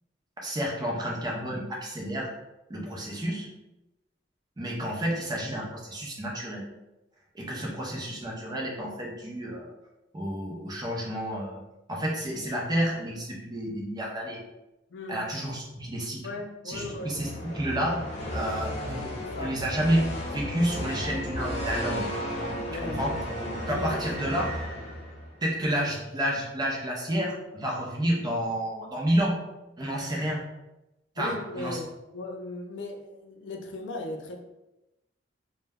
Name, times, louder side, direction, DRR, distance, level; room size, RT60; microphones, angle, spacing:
voice 1, 0.4-2.3 2.7-3.5 4.6-6.6 7.3-9.7 10.1-11.6 11.9-14.4 15.1-16.2 16.7-18.0 18.3-20.0 20.3-22.0 22.8-23.1 23.7-24.5 25.4-29.4 29.8-30.4 31.2-31.8, right 1 dB, 25° right, -3 dB, 0.6 m, -30 dB
voice 2, 14.9-15.2 16.2-17.2 19.3-19.6 22.7-23.1 23.7-24.2 31.2-31.9 32.1-34.4, left 2 dB, 85° left, 3 dB, 0.4 m, -37 dB
sound 1, 16.7-25.4, left 1 dB, 40° left, 0.7 m, -34 dB
2.2 x 2.0 x 3.4 m, 0.95 s
head